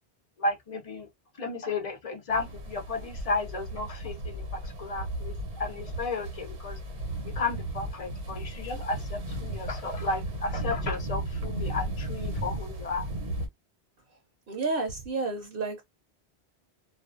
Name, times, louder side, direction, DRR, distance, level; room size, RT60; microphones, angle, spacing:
voice 1, 0.4-1.1 1.4-6.8 7.4-13.1, left 3 dB, 45° left, 0.5 m, -33 dB
sound 1, 2.3-13.5, right 1 dB, 80° right, 1.2 m, -35 dB
voice 2, 14.5-15.8, right 3 dB, 65° right, 0.9 m, -30 dB
2.4 x 2.2 x 2.4 m
omnidirectional pair, 1.1 m